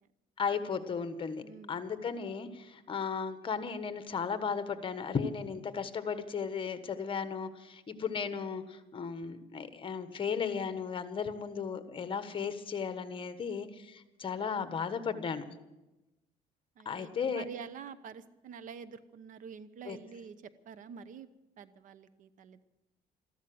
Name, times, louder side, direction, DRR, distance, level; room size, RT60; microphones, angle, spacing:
voice 1, 0.4-15.4 16.8-17.4 19.8-20.0, left 6 dB, 35° left, 11 dB, 1.4 m, -35 dB
voice 2, 1.4-1.8 16.8-20.4 20.7-21.3 21.6-22.6, right 6 dB, 60° right, 15 dB, 0.9 m, -47 dB
14.0 x 13.0 x 7.8 m, 1.0 s
cardioid pair, 100°, 16 cm